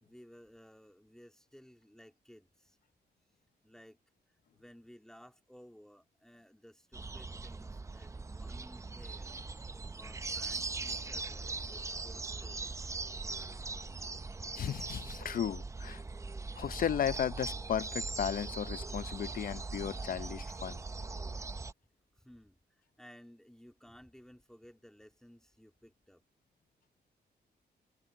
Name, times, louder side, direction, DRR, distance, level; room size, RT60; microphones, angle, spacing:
voice 1, 0.0-2.8 3.6-4.0 4.5-9.4 10.0-13.0 22.2-26.2, equal, 5° left, 2.5 m, -57 dB
sound 1, 6.9-21.7, right 3 dB, 15° right, 0.5 m, -40 dB
voice 2, 14.6-16.0 16.6-20.8, left 9 dB, 55° left, 0.7 m, -35 dB
cardioid pair, 125°, 18 cm